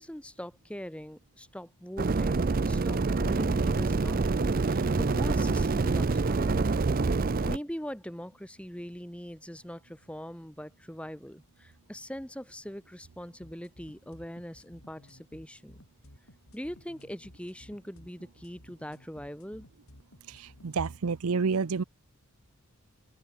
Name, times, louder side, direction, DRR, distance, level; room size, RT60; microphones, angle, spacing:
voice 1, 0.0-6.5 7.4-15.8 16.5-19.7, equal, 5° left, 1.7 m, -42 dB
sound 1, 2.0-7.6, right 3 dB, 40° right, 0.5 m, -26 dB
sound 2, 13.4-21.0, equal, 75° left, 7.6 m, -55 dB
voice 2, 20.3-21.8, right 5 dB, 80° right, 0.6 m, -29 dB
open air
head